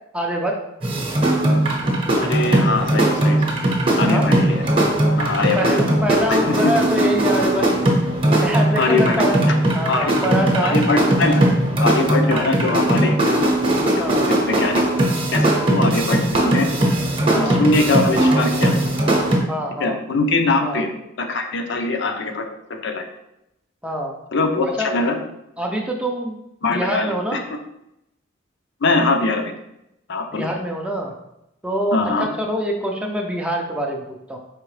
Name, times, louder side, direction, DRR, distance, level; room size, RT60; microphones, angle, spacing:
voice 1, 0.1-0.6 4.0-4.3 5.6-7.7 8.4-9.4 9.7-10.8 12.3-12.5 14.0-14.3 17.3-17.6 19.5-20.0 20.6-20.8 23.8-24.1 24.6-25.0 25.6-26.4 26.7-27.4 30.3-31.1 31.6-34.4, equal, 5° right, 1 dB, 0.4 m, -25 dB
sound 1, 0.8-19.4, right 1 dB, 25° right, 0.8 m, -19 dB
voice 2, 2.2-3.4 4.0-4.6 5.2-5.7 6.5-6.7 8.8-9.6 9.9-10.1 10.6-11.5 11.8-13.1 13.7-14.8 15.3-16.7 17.3-18.7 19.8-20.9 21.2-22.4 22.7-23.0 24.3-25.2 26.6-27.4 28.8-29.4 30.1-30.5 31.9-32.3, left 3 dB, 60° left, 5 dB, 0.6 m, -22 dB
4.7 x 3.5 x 3.2 m, 0.84 s
head